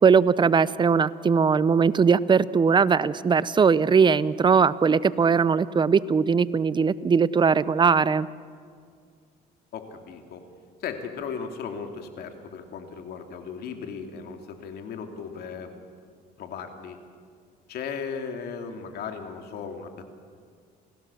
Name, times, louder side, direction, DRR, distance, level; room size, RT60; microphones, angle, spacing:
voice 1, 0.0-8.3, right 6 dB, 25° right, 18 dB, 0.6 m, -20 dB
voice 2, 9.7-10.4 10.8-15.7 16.4-17.0 17.7-20.1, left 6 dB, 70° left, 5 dB, 2.7 m, -36 dB
28.0 x 17.0 x 7.1 m, 2.1 s
cardioid pair, 110°, 17 cm